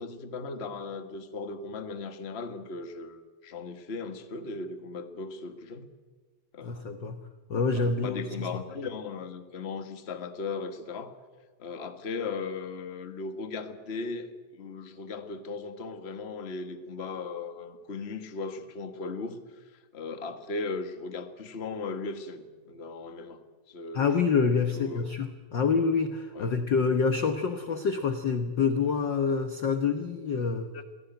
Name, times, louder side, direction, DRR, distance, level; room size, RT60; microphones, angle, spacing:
voice 1, 0.0-5.9 6.5-6.8 7.7-11.1 11.6-19.6 19.9-23.4 23.7-24.1 24.7-25.1 26.3-26.5 30.7-30.8, left 4 dB, 35° left, 7 dB, 1.1 m, -37 dB
voice 2, 6.6-8.6 23.9-30.7, left 5 dB, 65° left, 7 dB, 1.1 m, -27 dB
27.0 x 17.0 x 9.2 m, 1.4 s
omnidirectional pair, 3.7 m